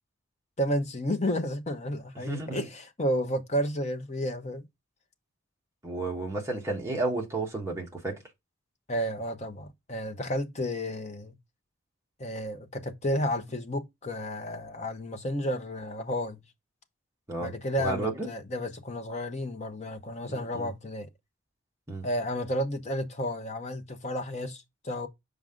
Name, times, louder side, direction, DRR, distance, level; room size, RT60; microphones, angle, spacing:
voice 1, 0.6-4.6 8.9-11.4 12.2-16.4 17.4-21.1 22.0-25.1, equal, 30° left, 0.8 m, -32 dB
voice 2, 2.2-2.6 5.8-8.2 17.3-17.5 17.8-18.1 20.3-20.7 21.9-22.1, right 2 dB, 15° right, 1.4 m, -32 dB
6.3 x 4.8 x 3.7 m
head